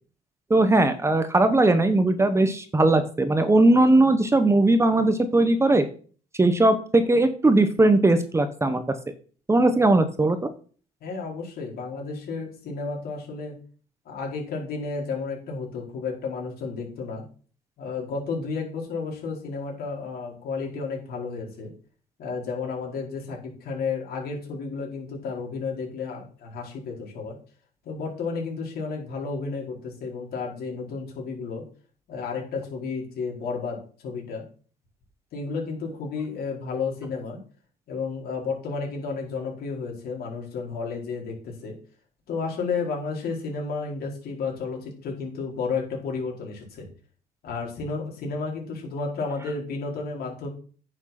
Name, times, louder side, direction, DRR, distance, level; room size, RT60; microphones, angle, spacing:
voice 1, 0.5-5.8 6.4-8.8 9.5-10.5, right 2 dB, 15° right, 10 dB, 1.1 m, -19 dB
voice 2, 11.0-13.6 14.0-17.2 17.8-21.7 22.2-27.3 27.8-31.7 32.1-34.4 35.3-37.4 37.9-41.8 42.3-46.9 47.4-50.5, left 4 dB, 65° left, 0 dB, 4.6 m, -32 dB
9.7 x 6.5 x 5.9 m, 0.42 s
cardioid pair, 110°, 17 cm